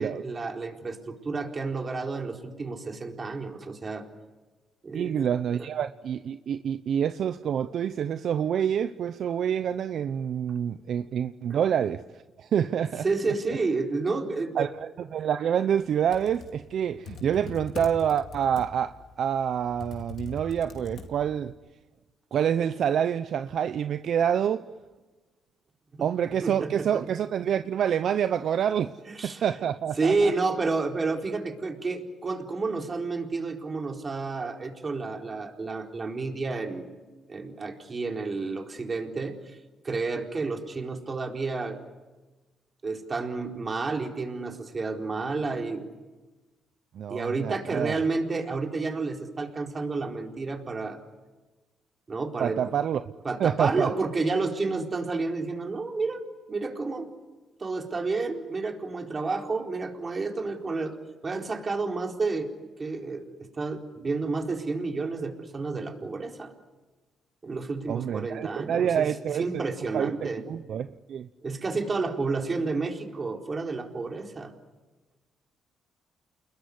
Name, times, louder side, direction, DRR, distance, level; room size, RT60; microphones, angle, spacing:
voice 1, 0.0-4.0 4.8-5.3 13.0-14.7 25.9-26.1 26.4-26.9 29.1-29.4 30.0-36.9 37.3-39.6 39.8-41.8 42.8-45.9 47.1-51.0 52.1-52.6 53.2-56.2 56.5-57.1 57.6-60.9 61.2-62.5 62.8-66.5 67.4-69.1 69.4-70.4 71.4-74.5, right 3 dB, 35° right, 4.2 m, -30 dB
voice 2, 4.9-13.0 14.6-21.5 22.3-24.6 26.0-28.9 29.2-30.3 46.9-48.0 52.4-53.0 53.4-53.9 67.9-69.6 69.9-71.3, right 8 dB, 65° right, 0.8 m, -27 dB
Computer keyboard, 15.9-21.5, left 4 dB, 60° left, 4.2 m, -42 dB
29.0 x 21.5 x 9.7 m
cardioid pair, 90°, 0 cm